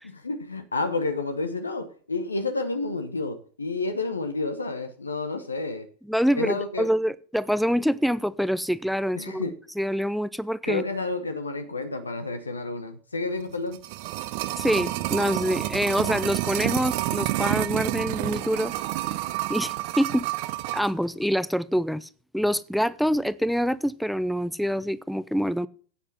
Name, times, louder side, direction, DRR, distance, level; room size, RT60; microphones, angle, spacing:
voice 1, 0.2-5.9 6.3-6.9 9.1-9.5 10.6-13.8, left 3 dB, 75° left, 1.1 m, -30 dB
voice 2, 6.1-9.5 9.8-10.8 14.6-18.7 19.5-20.3 20.7-22.1 22.3-25.7, equal, ahead, 0.5 m, -25 dB
sound 1, 13.5-20.9 21.2-21.3, right 16 dB, 45° right, 0.7 m, -29 dB
9.7 x 8.7 x 5.6 m
figure-of-eight pair, 90°, 0 cm